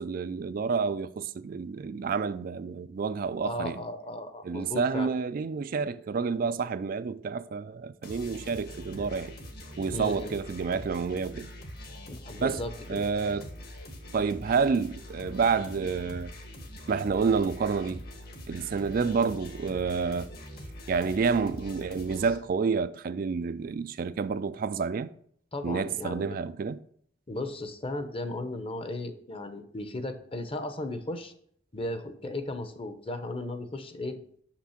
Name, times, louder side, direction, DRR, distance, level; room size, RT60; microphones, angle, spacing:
voice 1, 0.0-3.8 4.4-9.4 9.7-11.5 12.4-12.6 12.9-13.5 14.1-16.3 16.9-18.0 18.5-20.3 20.9-25.1 25.6-26.8, right 5 dB, 50° right, 0.4 m, -29 dB
voice 2, 3.4-5.1 9.9-10.3 12.1-13.0 19.0-19.1 25.5-26.4 27.3-31.3 31.7-34.2, left 1 dB, 30° left, 0.8 m, -36 dB
sound 1, 8.0-22.4, left 1 dB, 60° left, 1.7 m, -43 dB
6.3 x 5.9 x 5.8 m
head